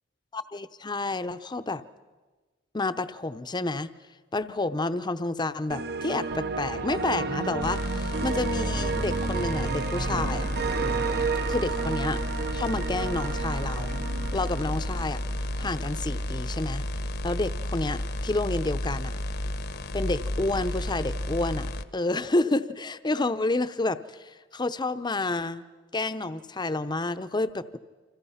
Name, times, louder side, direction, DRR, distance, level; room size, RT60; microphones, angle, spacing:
voice 1, 0.3-1.8 2.7-3.9 4.3-10.5 11.5-12.2 12.5-14.1 14.3-15.2 15.6-16.8 17.2-19.2 19.9-25.6 25.9-27.8, left 2 dB, 20° left, 12 dB, 0.7 m, -29 dB
sound 1, 5.7-15.8, right 4 dB, 55° right, 0.9 m, -31 dB
sound 2, 7.6-21.8, left 1 dB, 55° left, 1.0 m, -32 dB
28.5 x 26.0 x 5.7 m, 1.3 s
head